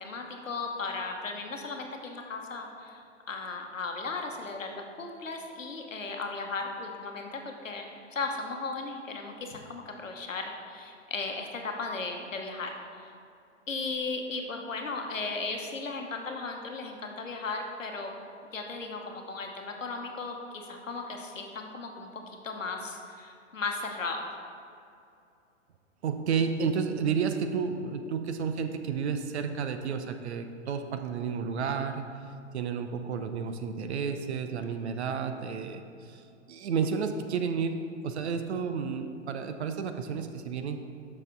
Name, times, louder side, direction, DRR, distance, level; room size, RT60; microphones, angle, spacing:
voice 1, 0.0-12.8 13.7-18.1 18.5-24.2, left 3 dB, 85° left, 3 dB, 1.0 m, -36 dB
voice 2, 26.0-32.0 32.5-37.8 38.0-40.8, right 6 dB, 60° right, 7 dB, 0.7 m, -31 dB
6.6 x 6.4 x 3.8 m, 2.5 s
figure-of-eight pair, 115°, 38 cm